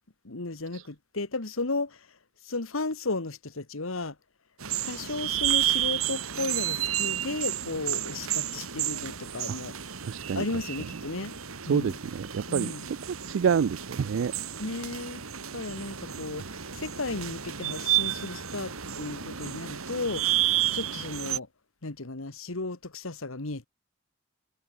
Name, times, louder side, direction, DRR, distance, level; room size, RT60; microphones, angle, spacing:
voice 1, 0.2-4.2 4.8-9.9 10.3-11.3 11.6-12.0 12.5-12.8 14.6-15.2 15.5-21.5 21.8-23.7, left 3 dB, 80° left, 1.7 m, -34 dB
sound 1, 4.6-21.4, right 12 dB, 90° right, 2.5 m, -31 dB
voice 2, 10.1-10.4 11.7-12.7 13.3-14.3, right 7 dB, 70° right, 0.3 m, -27 dB
head